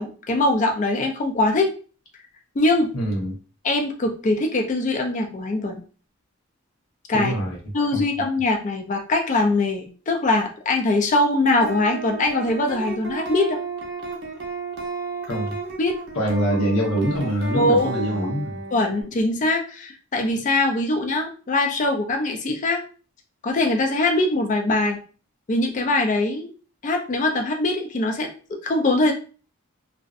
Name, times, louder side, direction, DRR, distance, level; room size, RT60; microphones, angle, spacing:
voice 1, 0.0-1.7 2.6-2.9 3.6-5.8 7.1-7.4 7.7-13.6 15.8-16.0 17.5-18.0 18.7-22.8 23.4-25.0 25.5-26.5 26.8-28.3 28.6-29.1, left 2 dB, 35° left, 3 dB, 0.3 m, -22 dB
voice 2, 2.9-3.3 7.1-7.6 7.9-8.0 15.3-15.5 16.1-18.6, right 1 dB, 75° left, -1 dB, 0.8 m, -24 dB
sound 1, 11.6-19.0, right 3 dB, 50° right, 0.5 m, -32 dB
2.6 x 2.0 x 2.4 m, 0.38 s
head